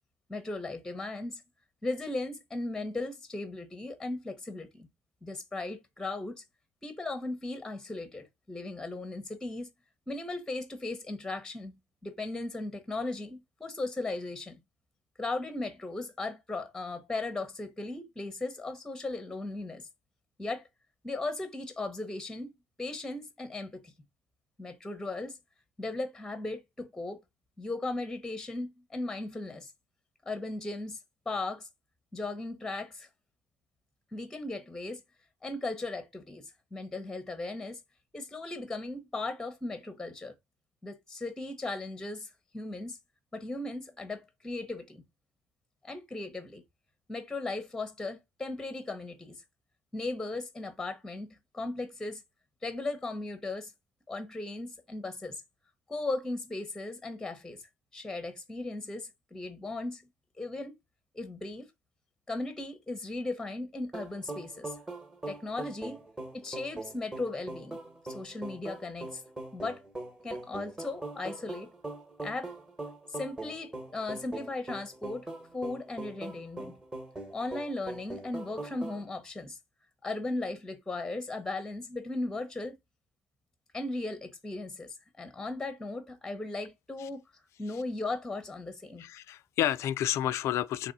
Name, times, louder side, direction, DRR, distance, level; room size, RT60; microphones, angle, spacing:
voice 1, 0.3-1.4 1.8-4.9 5.2-6.4 6.8-9.7 10.1-11.7 12.0-14.6 15.2-19.9 20.4-20.6 21.0-22.5 22.8-23.9 24.6-25.4 25.8-27.2 27.6-29.7 30.2-31.0 31.3-31.7 32.1-33.1 34.1-35.0 35.4-37.8 38.1-40.3 40.8-43.0 43.3-45.0 45.8-46.6 47.1-49.4 49.9-52.2 52.6-53.7 54.1-55.4 55.9-57.6 57.9-60.0 60.4-60.7 61.1-61.7 62.3-64.8 65.3-66.0 66.3-67.8 68.0-69.2 69.5-69.8 70.2-71.7 72.2-72.5 73.1-75.3 75.5-76.8 77.3-79.6 80.0-82.7 83.7-89.1, left 2 dB, 10° left, 0.7 m, -37 dB
sound 1, 63.9-79.0, right 2 dB, 15° right, 1.1 m, -41 dB
voice 2, 89.0-90.9, left 11 dB, 60° left, 0.4 m, -30 dB
4.2 x 3.0 x 3.9 m
cardioid pair, 150°, 5 cm